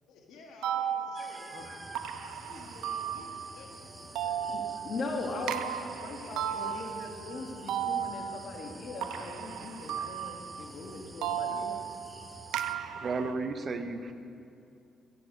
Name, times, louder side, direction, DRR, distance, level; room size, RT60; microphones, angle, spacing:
voice 1, 0.1-1.8 2.2-5.0 5.3-5.4 6.0-8.2, left 3 dB, 85° left, 1 dB, 1.7 m, -53 dB
sound 1, 0.6-3.8 4.2-10.7 11.2-13.3, right 9 dB, 90° right, 0.5 m, -35 dB
sound 2, 1.1-12.8, right 2 dB, 15° right, 0.5 m, -51 dB
sound 3, 1.6-13.2, right 1 dB, ahead, 2.8 m, -54 dB
voice 2, 4.5-11.8, left 3 dB, 60° left, 2 dB, 1.7 m, -40 dB
voice 3, 13.0-14.1, right 3 dB, 45° right, 9 dB, 0.7 m, -33 dB
14.0 x 8.4 x 5.4 m, 2.5 s
cardioid pair, 90°, 0 cm